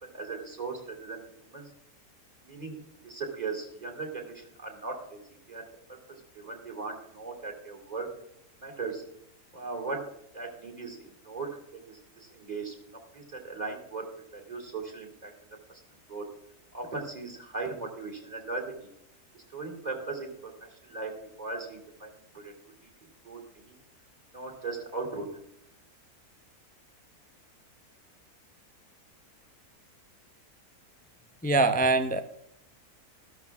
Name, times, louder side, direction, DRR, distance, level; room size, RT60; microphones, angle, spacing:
voice 1, 0.0-1.7 2.4-5.2 5.5-5.6 6.1-8.1 8.6-9.0 9.5-10.1 10.3-12.7 13.1-14.1 14.3-15.3 15.7-15.8 16.1-16.3 16.7-18.9 19.3-20.5 20.8-21.1 21.4-22.5 23.2-23.4 23.7-23.8 24.3-25.3, right 3 dB, 25° right, 1 dB, 3.1 m, -38 dB
voice 2, 31.4-32.2, right 3 dB, 15° left, 9 dB, 0.3 m, -23 dB
14.5 x 13.0 x 3.6 m, 0.77 s
omnidirectional pair, 1.6 m